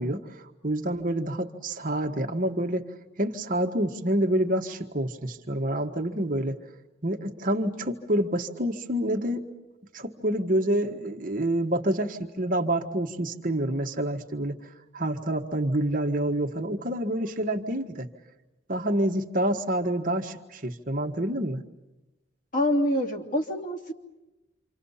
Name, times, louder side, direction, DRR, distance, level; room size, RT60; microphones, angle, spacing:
voice 1, 0.0-2.9 3.2-6.6 7.0-9.4 9.9-14.6 14.9-18.1 18.7-21.6, right 1 dB, 45° right, 4 dB, 1.5 m, -27 dB
voice 2, 22.5-23.9, left 1 dB, 45° left, 1 dB, 3.0 m, -26 dB
28.0 x 26.5 x 5.7 m, 1.0 s
head